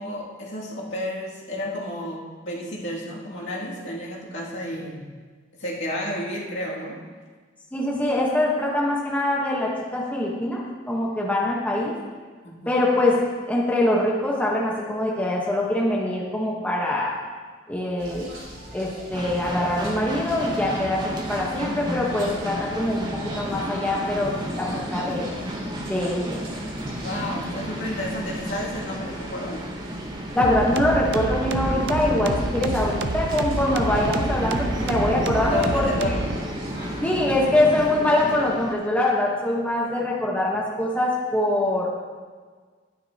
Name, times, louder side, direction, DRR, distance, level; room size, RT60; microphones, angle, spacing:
voice 1, 0.0-5.0 5.6-7.0 12.4-12.7 26.9-29.6 35.5-36.2, left 1 dB, 70° left, -5 dB, 2.3 m, -31 dB
voice 2, 7.7-10.6 10.9-11.9 12.7-13.2 13.5-17.2 17.7-18.3 18.7-25.2 25.9-26.4 30.3-36.2 37.0-41.9, left 1 dB, 10° left, -4 dB, 1.0 m, -23 dB
sound 1, 18.0-37.0, right 1 dB, 90° right, 3.1 m, -43 dB
sound 2, 19.1-38.7, equal, 20° right, 0.9 m, -32 dB
sound 3, 30.4-36.4, right 2 dB, 60° right, 0.5 m, -28 dB
12.0 x 9.6 x 2.8 m, 1.5 s
head